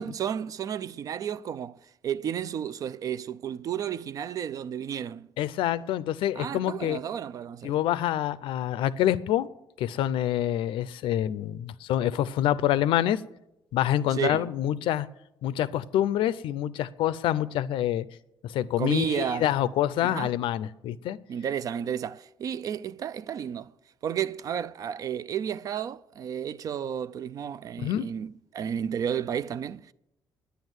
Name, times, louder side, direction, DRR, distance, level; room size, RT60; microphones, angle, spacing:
voice 1, 0.0-5.3 6.3-7.8 14.1-14.5 18.8-19.5 20.0-20.4 21.3-23.7 24.0-29.9, right 9 dB, 45° right, 0.4 m, -32 dB
voice 2, 5.4-7.0 7.6-9.5 9.8-13.2 13.7-15.1 15.4-18.0 18.5-21.2 27.8-28.1, left 12 dB, 80° left, 0.6 m, -26 dB
10.0 x 9.3 x 8.0 m
cardioid pair, 155°, 9 cm